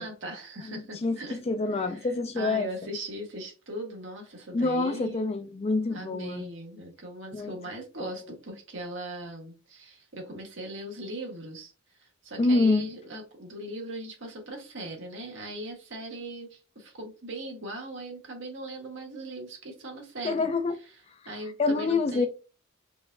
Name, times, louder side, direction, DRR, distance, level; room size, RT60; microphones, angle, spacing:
voice 1, 0.0-1.4 1.7-2.1 2.3-5.3 5.9-20.5 21.2-22.3, right 1 dB, 65° right, 1.3 m, -39 dB
voice 2, 0.7-2.7 4.5-6.5 7.3-7.5 8.0-8.1 12.4-12.9 20.2-20.8 21.6-22.3, left 3 dB, 30° left, 0.4 m, -26 dB
5.1 x 2.6 x 2.2 m
head